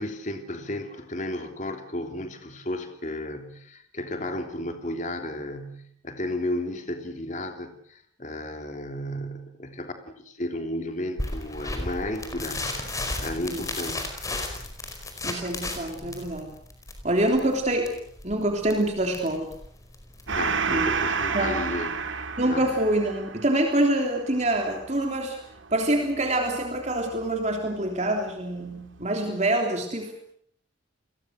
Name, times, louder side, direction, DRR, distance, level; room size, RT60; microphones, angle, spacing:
voice 1, 0.0-14.2 15.9-16.3 20.3-21.9 22.4-22.7, left 1 dB, 40° left, 6 dB, 3.3 m, -33 dB
sound 1, 11.2-20.3, left 2 dB, 15° left, 4.9 m, -34 dB
voice 2, 15.2-16.5 17.0-17.9 18.2-19.5 20.7-20.9 21.3-21.6 22.4-25.4 25.7-30.1, right 1 dB, 35° right, 2 dB, 3.4 m, -25 dB
Gong, 20.3-27.2, right 5 dB, 75° right, 2.1 m, -31 dB
29.5 x 22.0 x 6.5 m, 0.64 s
head